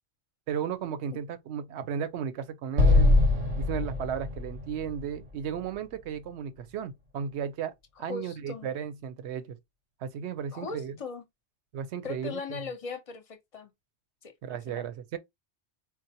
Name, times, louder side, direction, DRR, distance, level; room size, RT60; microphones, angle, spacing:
voice 1, 0.5-3.2 3.6-7.7 8.0-9.6 10.0-10.9 11.7-12.6 14.4-15.2, right 8 dB, 75° right, 0.9 m, -35 dB
Explosion, 2.8-6.1, left 2 dB, 40° right, 0.7 m, -24 dB
voice 2, 8.1-8.7 10.5-11.2 12.0-13.7 14.2-14.9, left 4 dB, 40° left, 0.6 m, -39 dB
3.9 x 2.1 x 2.7 m
omnidirectional pair, 1.2 m